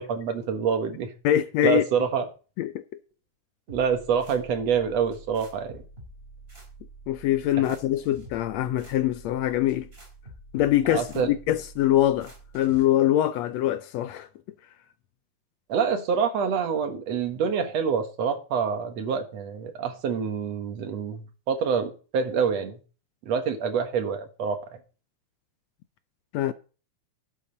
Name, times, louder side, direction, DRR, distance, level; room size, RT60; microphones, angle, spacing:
voice 1, 0.0-1.1 1.6-2.3 3.7-5.8 10.9-11.3 15.7-22.8 23.2-24.6, right 6 dB, 60° right, 2.3 m, -26 dB
voice 2, 1.2-1.8 2.6-2.7 7.1-9.9 10.5-14.3 26.3-26.5, left 12 dB, 80° left, 1.6 m, -23 dB
sound 1, 3.7-12.8, right 2 dB, 20° right, 3.5 m, -47 dB
11.0 x 8.8 x 4.0 m
omnidirectional pair, 3.6 m